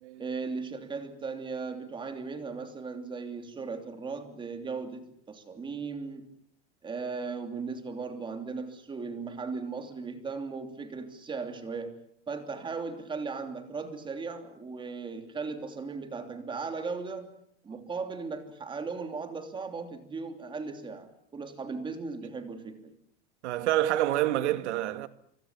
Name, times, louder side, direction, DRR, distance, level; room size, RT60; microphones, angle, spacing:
voice 1, 0.2-6.3 6.8-11.9 12.3-17.3 17.6-22.9, right 4 dB, 15° right, 3.0 m, -37 dB
voice 2, 23.4-25.1, right 13 dB, 75° right, 2.1 m, -27 dB
26.0 x 25.0 x 7.4 m
supercardioid pair, 160°, 35 cm